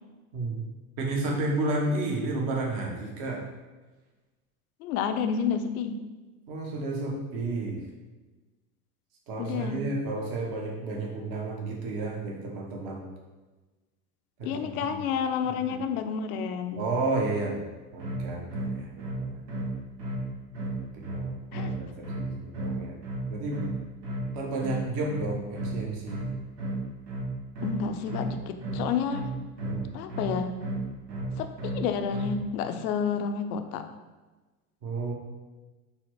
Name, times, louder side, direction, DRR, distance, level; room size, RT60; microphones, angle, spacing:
voice 1, 1.0-3.5 6.5-7.8 9.3-13.1 14.4-15.0 15.4-15.8 16.8-17.7 17.9-19.4 20.9-23.0 23.3-23.6 24.3-26.2 29.6-29.9 31.1-31.3 34.8-35.1, right 2 dB, 50° right, -1 dB, 1.0 m, -32 dB
voice 2, 4.8-6.0 9.4-9.8 14.4-16.9 21.5-21.7 27.6-29.3 29.9-30.6 31.4-33.8, left 6 dB, 70° left, 8 dB, 0.6 m, -30 dB
sound 1, 18.0-32.5, right 2 dB, 85° right, 1.0 m, -33 dB
4.1 x 2.1 x 4.5 m, 1.2 s
hypercardioid pair, 100°, 45 cm